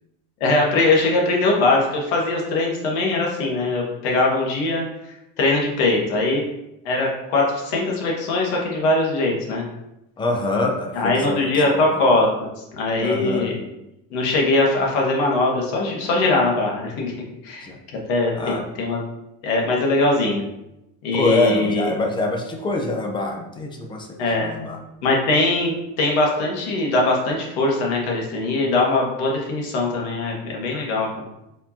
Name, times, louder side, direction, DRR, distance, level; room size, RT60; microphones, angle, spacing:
voice 1, 0.4-4.8 5.4-6.4 6.8-9.6 10.9-13.6 14.1-17.1 17.4-19.0 19.4-20.4 21.0-21.9 24.2-24.5 25.0-31.3, left 2 dB, 80° left, -1 dB, 1.4 m, -21 dB
voice 2, 10.2-11.8 13.0-13.5 17.6-17.8 18.3-18.7 21.1-24.8, left 3 dB, 15° left, 2 dB, 0.4 m, -25 dB
4.7 x 3.6 x 2.8 m, 0.89 s
cardioid pair, 160°, 33 cm